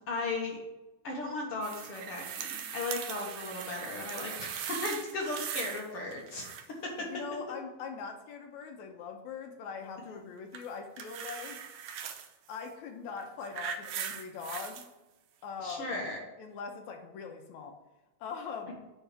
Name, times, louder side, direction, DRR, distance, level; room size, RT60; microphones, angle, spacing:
voice 1, 0.1-0.6 1.0-6.5 6.8-7.1 10.1-10.2 15.6-16.2, left 2 dB, 55° left, -2 dB, 1.9 m, -36 dB
sound 1, 1.6-5.9 6.1-6.8 10.5-12.3 13.1-14.9 15.7-15.8, right 8 dB, 75° right, 1.8 m, -40 dB
voice 2, 7.0-11.6 12.5-14.9 15.4-16.1 16.4-17.7 18.2-18.8, left 5 dB, 80° left, 4 dB, 2.1 m, -41 dB
8.8 x 3.6 x 6.0 m, 1.1 s
omnidirectional pair, 3.5 m